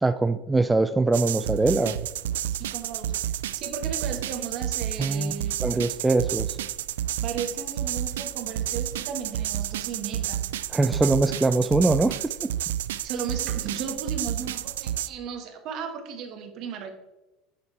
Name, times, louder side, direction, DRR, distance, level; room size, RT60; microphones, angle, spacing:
voice 1, 0.0-2.0 5.0-5.3 5.6-6.6 10.7-12.3, right 2 dB, 15° right, 11 dB, 0.4 m, -23 dB
sound 1, 1.1-15.1, right 12 dB, 85° right, 0.3 m, -30 dB
voice 2, 2.5-5.5 7.2-10.5 13.0-16.9, right 6 dB, 55° right, 5 dB, 1.5 m, -35 dB
8.4 x 7.3 x 3.3 m, 1.0 s
hypercardioid pair, 90°, 0 cm